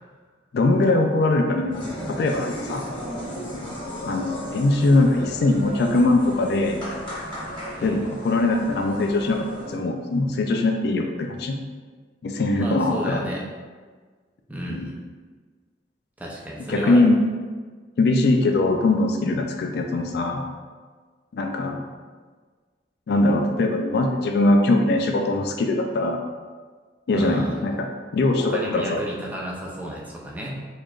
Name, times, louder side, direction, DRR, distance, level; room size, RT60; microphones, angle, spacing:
voice 1, 0.5-2.8 4.0-6.8 7.8-11.6 12.2-13.2 14.7-14.9 16.7-17.2 18.0-20.4 21.3-21.8 23.1-26.2 27.1-27.9 28.1-29.0, left 2 dB, 60° left, 3 dB, 0.3 m, -21 dB
sound 1, 1.7-9.8, equal, 25° left, 1.3 m, -35 dB
voice 2, 12.5-13.4 14.5-15.0 16.2-17.1 27.1-27.6 28.4-30.7, equal, 10° right, -4 dB, 0.5 m, -32 dB
4.3 x 3.1 x 2.4 m, 1.5 s
head